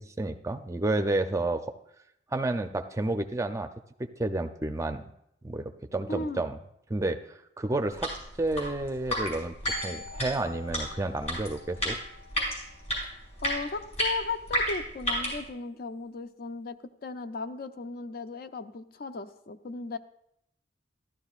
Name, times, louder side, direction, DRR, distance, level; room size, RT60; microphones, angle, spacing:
voice 1, 0.0-1.7 2.3-3.7 4.0-5.0 5.4-6.6 6.9-8.1 8.4-9.5 9.8-12.0, right 2 dB, 15° right, 8 dB, 0.5 m, -30 dB
voice 2, 6.1-6.4 13.4-16.8 17.0-20.0, left 3 dB, 55° left, 10 dB, 0.5 m, -36 dB
sound 1, 7.9-15.4, equal, 40° left, 5.0 m, -33 dB
Glockenspiel, 9.6-13.8, left 2 dB, 80° left, 3.2 m, -45 dB
13.5 x 12.5 x 2.4 m, 0.76 s
head